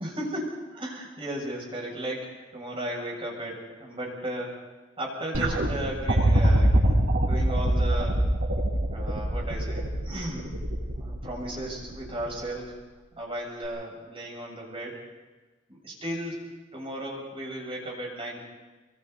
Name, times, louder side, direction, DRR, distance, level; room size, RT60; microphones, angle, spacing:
voice 1, 0.0-4.5 5.0-8.2 8.9-12.8 13.2-14.9 15.7-16.4 16.7-18.4, right 1 dB, 30° right, -2 dB, 7.3 m, -35 dB
sound 1, 5.3-12.5 13.6-13.7, right 1 dB, 75° right, 7.0 m, -25 dB
26.5 x 25.5 x 4.1 m, 1.2 s
head